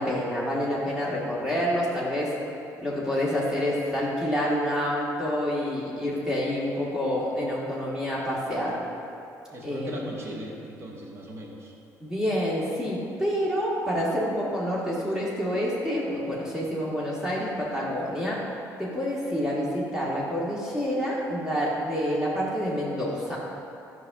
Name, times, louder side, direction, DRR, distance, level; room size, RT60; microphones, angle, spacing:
voice 1, 0.0-2.3 2.8-8.8 9.6-10.0 12.0-18.4 18.8-23.4, equal, 10° right, -6 dB, 1.2 m, -28 dB
voice 2, 9.5-11.7, equal, 40° right, -1 dB, 1.2 m, -39 dB
10.5 x 5.5 x 2.3 m, 2.7 s
cardioid pair, 95°, 7 cm